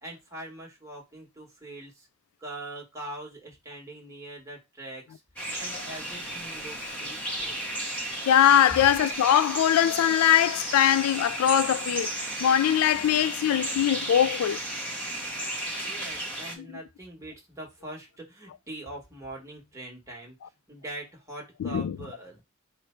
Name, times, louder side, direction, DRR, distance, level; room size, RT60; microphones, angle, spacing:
voice 1, 0.0-2.1 2.4-7.6 15.8-20.4 20.7-22.4, right 1 dB, 15° right, 1.3 m, -43 dB
sound 1, 5.4-16.6, right 1 dB, 5° left, 1.0 m, -34 dB
voice 2, 8.3-12.1 12.4-14.6 21.6-22.0, left 10 dB, 80° left, 0.3 m, -21 dB
4.8 x 2.1 x 4.3 m
head